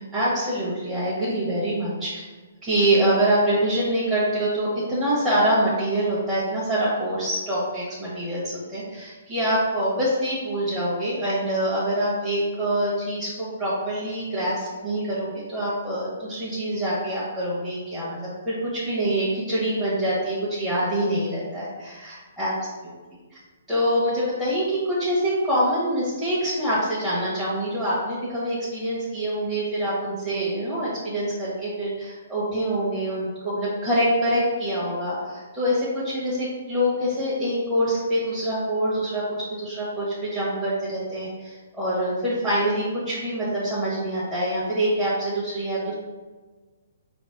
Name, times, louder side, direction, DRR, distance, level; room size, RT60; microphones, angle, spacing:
voice 1, 0.0-2.2 2.6-22.5 22.8-22.9 23.7-45.9, right 1 dB, 10° right, -12 dB, 1.1 m, -25 dB
4.8 x 2.0 x 3.7 m, 1.3 s
hypercardioid pair, 135°, 0 cm